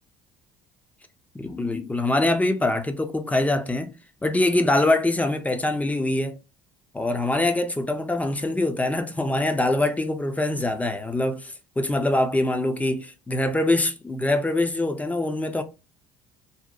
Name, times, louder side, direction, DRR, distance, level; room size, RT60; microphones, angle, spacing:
voice 1, 1.3-3.9 4.2-6.4 6.9-15.6, left 2 dB, 10° left, 0.4 m, -24 dB
2.8 x 2.1 x 2.3 m
supercardioid pair, 90°, 14 cm